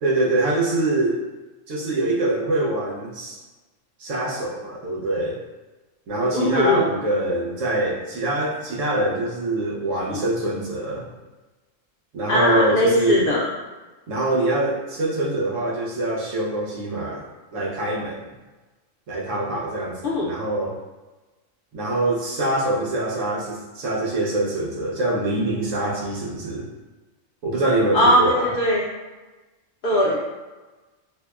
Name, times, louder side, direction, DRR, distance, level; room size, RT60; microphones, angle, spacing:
voice 1, 0.0-1.2 1.7-3.4 4.0-5.4 6.1-11.1 12.1-13.3 14.1-17.3 17.5-18.3 19.1-20.7 21.7-26.7 27.4-28.5, right 2 dB, 75° right, -3 dB, 1.1 m, -24 dB
voice 2, 6.3-6.9 12.3-13.5 20.0-20.3 27.9-28.8 29.8-30.2, left 1 dB, 55° left, -5 dB, 0.7 m, -19 dB
4.8 x 2.1 x 2.4 m, 1.2 s
omnidirectional pair, 1.3 m